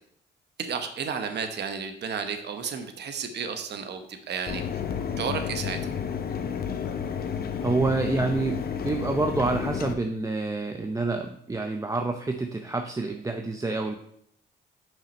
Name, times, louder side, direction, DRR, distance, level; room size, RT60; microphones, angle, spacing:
voice 1, 0.6-4.6 5.2-5.8, right 6 dB, 60° right, 7 dB, 1.0 m, -32 dB
Mechanisms, 4.5-9.9, left 7 dB, 50° left, 0.8 m, -31 dB
voice 2, 7.6-13.9, right 3 dB, 15° right, 4 dB, 0.6 m, -28 dB
5.9 x 5.7 x 5.2 m, 0.70 s
cardioid pair, 90°, 20 cm